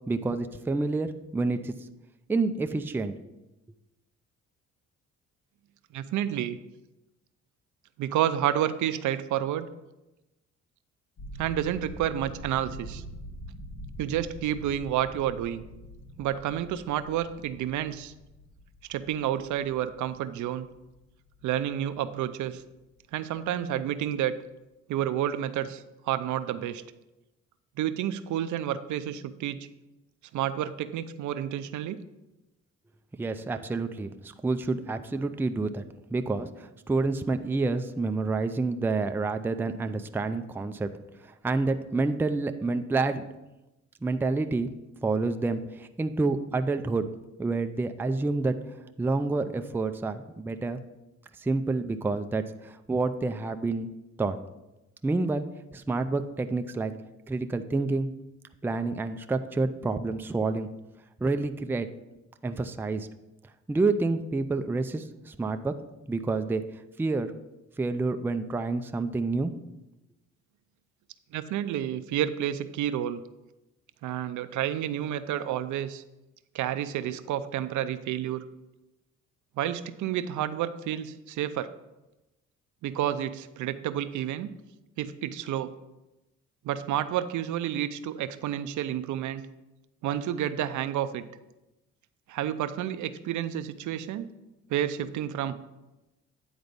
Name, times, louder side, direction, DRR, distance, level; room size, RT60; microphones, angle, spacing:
voice 1, 0.1-1.1 1.3-1.7 2.3-3.1 33.2-35.8 36.1-40.9 41.2-43.2 44.0-44.7 45.0-47.1 47.4-48.6 49.0-50.8 51.4-53.9 54.2-54.4 55.0-55.4 55.7-56.9 57.3-58.1 58.6-60.7 61.2-61.9 62.4-63.1 63.7-65.7 66.1-66.6 67.0-67.3 67.8-69.5, right 3 dB, 5° right, 8 dB, 0.4 m, -28 dB
voice 2, 5.9-6.6 8.0-9.6 11.4-13.0 14.0-15.7 16.2-18.1 18.9-20.7 21.4-22.6 23.1-24.4 24.9-26.8 27.8-29.6 30.3-32.0 71.3-73.2 74.0-76.0 76.5-78.5 79.6-81.7 82.8-84.5 85.0-85.7 86.6-89.4 90.0-91.2 92.3-94.3 94.7-95.5, right 11 dB, 75° right, 12 dB, 0.6 m, -30 dB
sound 1, 11.2-23.0 23.3-23.7 24.0-24.2, equal, 55° left, 1.3 m, -45 dB
9.4 x 4.0 x 5.2 m, 0.99 s
cardioid pair, 90°, 30 cm